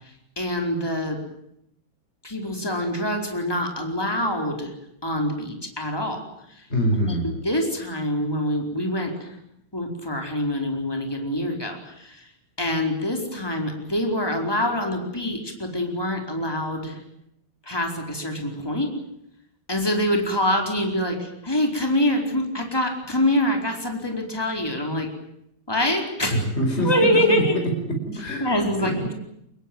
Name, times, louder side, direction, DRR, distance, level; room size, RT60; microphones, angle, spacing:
voice 1, 0.4-1.2 2.2-4.7 5.0-6.2 6.5-6.6 7.2-9.4 9.7-12.2 12.6-17.0 17.7-18.9 19.7-25.1 25.7-26.4 26.8-27.5 28.4-29.1, left 1 dB, 10° left, 2 dB, 4.5 m, -25 dB
voice 2, 6.7-7.4 26.3-26.9 27.3-27.4 28.1-29.0, equal, 30° left, 2 dB, 5.7 m, -25 dB
25.0 x 21.5 x 9.3 m, 0.77 s
omnidirectional pair, 2.2 m